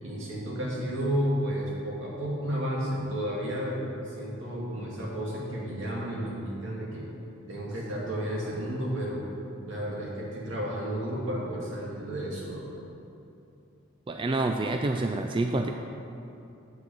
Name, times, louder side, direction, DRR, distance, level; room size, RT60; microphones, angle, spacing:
voice 1, 0.0-7.0 7.5-9.2 9.7-12.6, equal, 70° right, -5 dB, 2.4 m, -32 dB
voice 2, 14.1-15.7, right 2 dB, 25° right, 4 dB, 0.3 m, -27 dB
7.6 x 6.3 x 7.1 m, 2.7 s
head